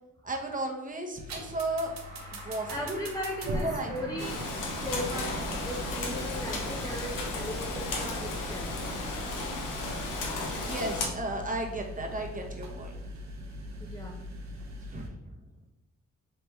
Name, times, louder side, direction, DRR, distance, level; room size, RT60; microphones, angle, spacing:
voice 1, 0.2-1.9 2.4-3.0 3.5-3.9 4.2-4.3 10.5-12.9 14.9-15.1, right 2 dB, 25° right, 1 dB, 0.8 m, -34 dB
sound 1, 1.1-15.1, equal, 65° right, 0.7 m, -40 dB
sound 2, 1.5-6.5, right 1 dB, 85° right, 1.1 m, -48 dB
voice 2, 2.7-4.5 4.8-8.7 13.8-14.2, equal, 10° left, -1 dB, 0.5 m, -37 dB
Rain, 4.2-11.1, left 2 dB, 90° left, 0.7 m, -34 dB
3.3 x 3.2 x 3.1 m, 0.97 s
supercardioid pair, 50°, 31 cm